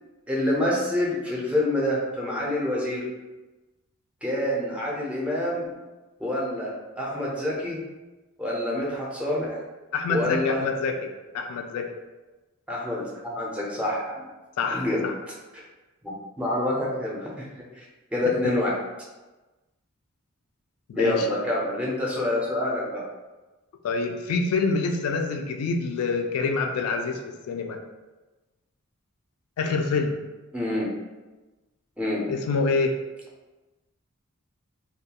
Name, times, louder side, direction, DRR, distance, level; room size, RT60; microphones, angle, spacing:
voice 1, 0.3-3.0 4.2-5.7 6.2-7.8 8.4-9.6 10.1-10.6 12.7-14.2 14.7-15.0 16.0-17.5 17.7-17.8 18.1-18.8 20.9-23.0 30.5-30.9 32.0-32.2, left 1 dB, 5° right, -5 dB, 0.4 m, -27 dB
voice 2, 9.9-11.1 11.3-11.9 14.6-15.1 18.4-18.5 20.9-21.3 23.8-27.8 29.6-30.2 32.3-32.9, left 4 dB, 80° left, 7 dB, 0.3 m, -26 dB
2.2 x 2.2 x 2.8 m, 1.2 s
head